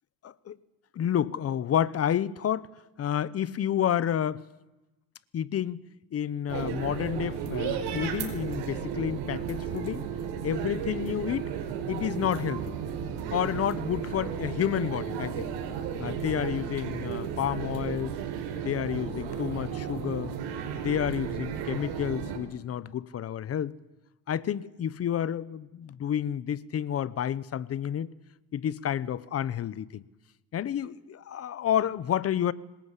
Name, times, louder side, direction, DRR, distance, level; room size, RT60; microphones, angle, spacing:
voice 1, 0.2-0.6 0.9-2.7 3.0-4.4 5.3-5.8 6.1-10.0 10.4-11.5 11.9-12.8 13.3-15.5 16.0-18.1 18.6-20.3 20.7-23.7 24.3-28.1 28.5-30.0 30.5-32.5, left 10 dB, 35° left, 0.9 m, -30 dB
sound 1, 6.5-22.4, right 8 dB, 80° right, 5.0 m, -34 dB
26.0 x 21.0 x 8.3 m
cardioid pair, 130°, 41 cm